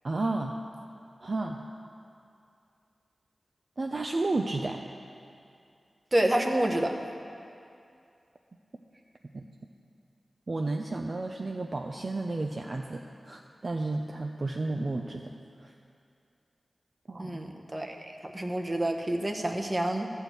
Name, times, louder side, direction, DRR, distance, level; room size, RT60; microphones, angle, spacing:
voice 1, 0.0-0.6 1.2-1.6 3.8-4.9 9.3-9.5 10.5-15.3 15.6-15.7 17.1-17.4, right 2 dB, 45° right, 2 dB, 0.4 m, -32 dB
voice 2, 6.1-7.0 17.2-20.1, right 1 dB, 25° right, 3 dB, 0.8 m, -28 dB
13.0 x 4.5 x 8.1 m, 2.5 s
wide cardioid pair, 100°, 0 cm